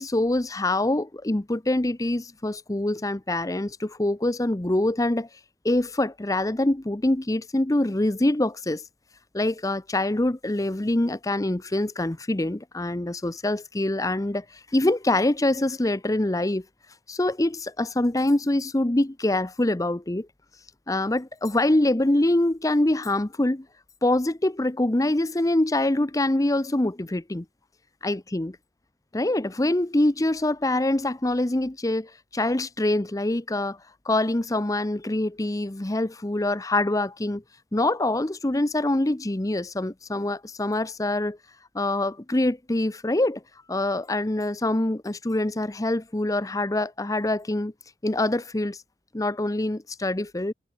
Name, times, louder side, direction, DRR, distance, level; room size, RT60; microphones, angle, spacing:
voice 1, 0.0-5.3 5.6-8.8 9.3-16.6 17.1-20.3 20.9-23.7 24.0-27.4 28.0-28.5 29.1-33.8 34.0-37.4 37.7-41.4 41.7-43.4 43.7-47.7 48.0-48.8 49.1-50.5, left 1 dB, 20° left, 0.7 m, -25 dB
head